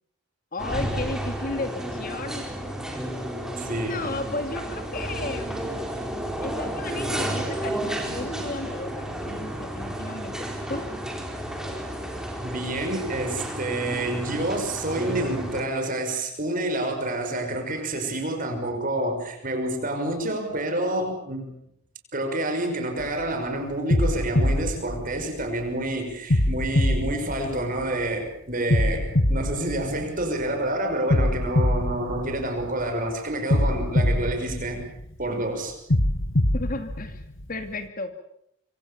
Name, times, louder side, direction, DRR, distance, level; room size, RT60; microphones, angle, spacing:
voice 1, 0.5-2.5 3.8-5.9 6.4-10.9 36.5-37.2 37.5-38.1, left 2 dB, 40° left, 8 dB, 2.5 m, -34 dB
sound 1, 0.6-15.6, right 1 dB, 5° right, 4.1 m, -32 dB
voice 2, 3.6-4.1 12.4-21.5 22.1-34.9 35.2-35.7, right 1 dB, 40° right, 4 dB, 6.2 m, -28 dB
sound 2, 23.0-23.3 23.9-25.7 26.3-28.1 28.7-30.5 31.1-32.9 33.5-35.3 35.9-37.7, left 1 dB, 60° left, 2.1 m, -24 dB
26.0 x 26.0 x 7.2 m, 0.74 s
head